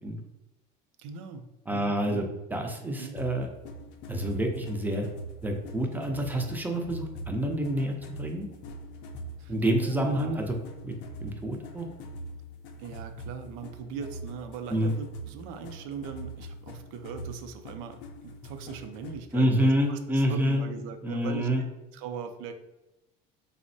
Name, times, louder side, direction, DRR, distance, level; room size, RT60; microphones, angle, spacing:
voice 1, 1.0-2.2 3.0-3.1 9.4-9.5 9.8-10.4 12.8-18.0 18.2-21.7 21.9-22.5, right 6 dB, 75° right, 7 dB, 0.5 m, -40 dB
voice 2, 1.7-2.3 2.5-3.5 4.1-5.1 5.4-8.5 9.5-10.6 10.8-10.9 11.2-11.9 14.7-14.9 19.3-20.6 21.0-21.6, equal, 10° right, 2 dB, 0.4 m, -27 dB
sound 1, 3.2-19.3, right 1 dB, 60° left, 0.4 m, -43 dB
3.4 x 2.0 x 2.6 m, 0.97 s
cardioid pair, 125°, 21 cm